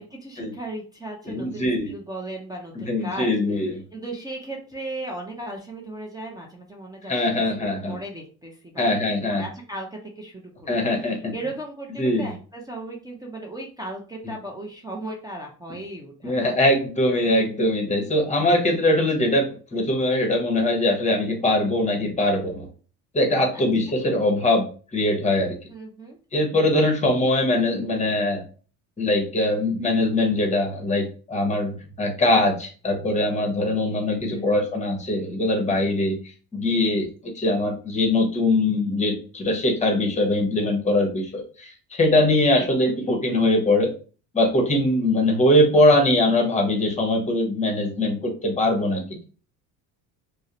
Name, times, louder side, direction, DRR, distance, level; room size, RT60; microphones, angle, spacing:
voice 1, 0.0-3.3 3.9-7.4 7.9-9.0 9.3-16.5 23.5-23.6 25.7-26.2 34.3-34.7 42.6-42.9, right 1 dB, 10° right, -2 dB, 0.4 m, -36 dB
voice 2, 1.2-1.9 2.7-3.8 7.1-8.0 8.8-9.4 10.7-11.3 12.0-12.3 16.2-22.7 23.1-24.7 24.9-25.6 26.3-28.4 29.0-36.2 36.5-43.9 44.3-49.2, left 1 dB, 15° left, 3 dB, 0.8 m, -22 dB
2.3 x 2.0 x 2.8 m, 0.38 s
supercardioid pair, 100°, 40 cm